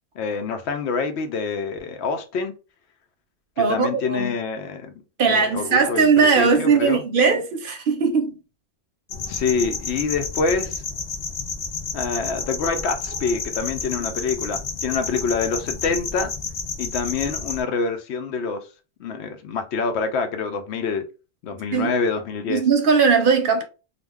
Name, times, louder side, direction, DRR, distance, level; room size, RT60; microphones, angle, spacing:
voice 1, 0.2-2.5 3.6-4.9 5.3-6.1 6.4-7.0 9.3-10.8 11.9-16.3 16.8-18.6 19.0-21.0 21.4-22.6, left 4 dB, 85° left, 0.9 m, -26 dB
voice 2, 3.6-4.3 5.2-8.3 21.7-21.9 22.5-23.6, right 5 dB, 60° right, 0.7 m, -19 dB
sound 1, 9.1-17.6, left 5 dB, 55° left, 0.5 m, -31 dB
2.5 x 2.2 x 3.3 m
omnidirectional pair, 1.1 m